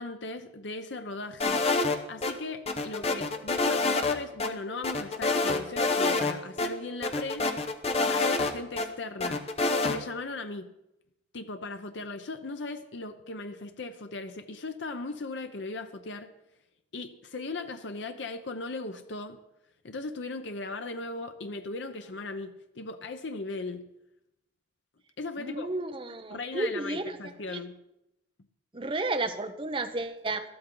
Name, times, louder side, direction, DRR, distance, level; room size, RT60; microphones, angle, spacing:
voice 1, 0.0-1.7 2.1-7.5 8.0-9.5 9.8-10.7 11.3-16.3 16.9-19.4 19.8-23.8 25.2-25.7 26.3-27.8, left 3 dB, 80° left, 8 dB, 0.8 m, -38 dB
sound 1, 1.4-2.3 2.7-4.1 4.4-4.5 4.8-6.3 6.6-6.7 7.0-8.9 9.2-10.0, left 3 dB, 35° left, 0.9 m, -27 dB
voice 2, 25.4-27.6 28.7-30.4, right 2 dB, 30° right, 8 dB, 0.8 m, -32 dB
13.5 x 12.5 x 3.9 m, 0.88 s
head